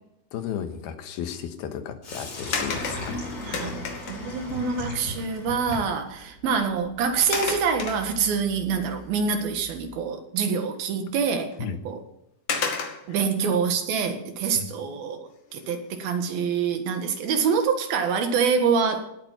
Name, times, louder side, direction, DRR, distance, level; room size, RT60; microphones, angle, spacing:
voice 1, 0.3-3.3 11.6-11.8 13.1-13.2 14.5-14.7, left 8 dB, 80° left, 8 dB, 3.0 m, -34 dB
Sink (filling or washing), 2.0-9.9, left 1 dB, 40° left, 5.1 m, -38 dB
sound 1, 2.5-4.4 5.6-5.7 6.1-6.3 7.3-8.5 9.0-9.1 11.5-11.6 12.5-13.2 15.5-15.9 16.4-16.5, left 5 dB, 60° left, 3.6 m, -31 dB
voice 2, 3.5-12.0 13.1-19.1, right 6 dB, 75° right, 6 dB, 3.4 m, -26 dB
17.5 x 9.0 x 5.9 m, 0.80 s
omnidirectional pair, 4.4 m